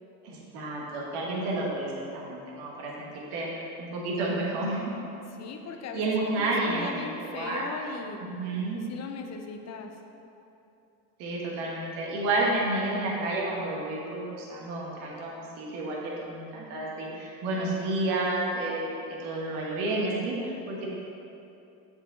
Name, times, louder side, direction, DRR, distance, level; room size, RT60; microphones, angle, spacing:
voice 1, 0.2-4.9 5.9-7.6 8.2-8.8 11.2-20.9, right 2 dB, 70° right, -4 dB, 1.4 m, -31 dB
voice 2, 5.3-8.2 8.7-10.0, left 4 dB, 35° left, 5 dB, 0.7 m, -39 dB
7.7 x 4.7 x 3.8 m, 2.9 s
supercardioid pair, 100°, 46 cm